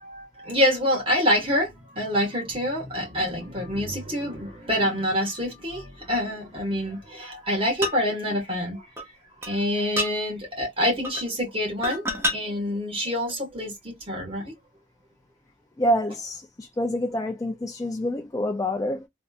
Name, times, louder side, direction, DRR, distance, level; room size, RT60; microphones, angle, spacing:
voice 1, 0.0-8.8 9.4-14.5, equal, 30° right, 1.7 m, -26 dB
sound 1, 7.8-8.0 9.0-9.1 9.4-9.5 10.0-10.1 11.0-11.3 11.8-12.4 13.3-13.4, left 1 dB, 15° right, 0.8 m, -27 dB
voice 2, 15.8-19.1, equal, 20° left, 0.4 m, -27 dB
3.4 x 2.6 x 2.4 m
head